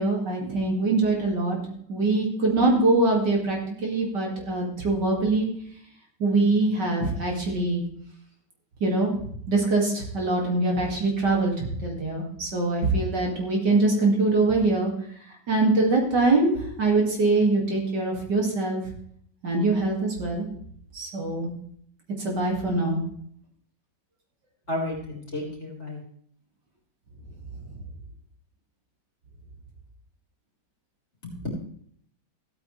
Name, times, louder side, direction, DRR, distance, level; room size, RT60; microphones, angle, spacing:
voice 1, 0.0-5.5 6.2-7.8 8.8-14.9 15.5-18.8 19.4-20.5 20.9-21.5 22.2-23.0, right 2 dB, 60° right, -1 dB, 3.0 m, -23 dB
voice 2, 24.7-26.0 31.2-31.5, left 1 dB, 35° left, -2 dB, 3.9 m, -32 dB
15.0 x 9.0 x 3.3 m, 0.62 s
omnidirectional pair, 2.1 m